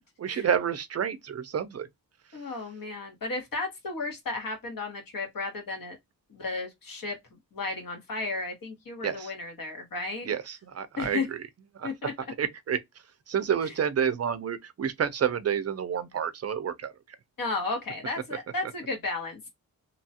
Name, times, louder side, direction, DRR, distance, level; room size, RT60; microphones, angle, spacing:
voice 1, 0.2-1.9 9.0-9.3 10.2-11.4 11.7-11.9 12.4-12.8 13.3-16.9, right 8 dB, 45° right, 0.4 m, -29 dB
voice 2, 2.3-6.0 6.3-7.2 7.5-10.3 11.0-11.3 11.8-12.1 17.4-19.5, left 3 dB, 70° left, 1.3 m, -33 dB
2.8 x 2.3 x 2.7 m
wide cardioid pair, 175°, 36 cm